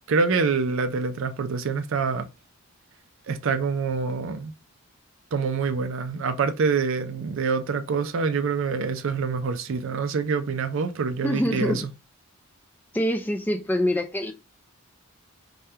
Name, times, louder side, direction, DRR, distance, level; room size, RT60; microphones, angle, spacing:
voice 1, 0.1-2.3 3.3-4.5 5.3-11.9, right 5 dB, 60° right, 0.4 m, -26 dB
voice 2, 11.2-11.9 12.9-14.3, equal, 10° left, 0.3 m, -25 dB
3.4 x 2.2 x 2.7 m
head